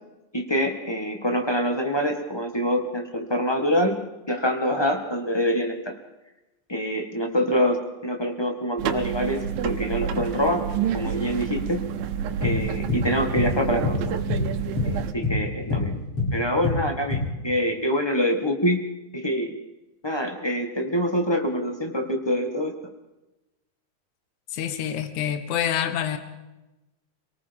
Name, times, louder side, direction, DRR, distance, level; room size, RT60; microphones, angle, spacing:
voice 1, 0.3-6.0 6.7-10.6 10.9-11.8 12.4-14.2 14.8-16.0 16.3-18.8 19.1-19.5 20.0-22.7, equal, 20° left, 4 dB, 0.7 m, -25 dB
sound 1, 8.8-15.1, right 9 dB, 85° right, 2.9 m, -29 dB
sound 2, 12.4-13.1 13.4-13.6 13.8-15.0 15.2-16.4 16.6-17.2, left 3 dB, 45° left, 9.2 m, -25 dB
voice 2, 24.5-26.2, left 9 dB, 65° left, 9 dB, 2.6 m, -27 dB
27.0 x 19.0 x 5.4 m, 1.0 s
omnidirectional pair, 4.0 m